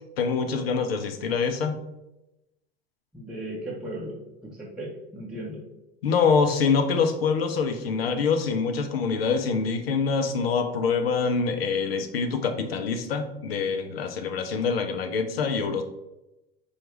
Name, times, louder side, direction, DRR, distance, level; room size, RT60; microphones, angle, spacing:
voice 1, 0.2-1.8 6.0-15.8, left 5 dB, 80° left, 8 dB, 0.5 m, -25 dB
voice 2, 3.1-5.6, right 1 dB, 5° right, -6 dB, 0.7 m, -36 dB
4.5 x 2.3 x 3.0 m, 0.94 s
hypercardioid pair, 80°, 30 cm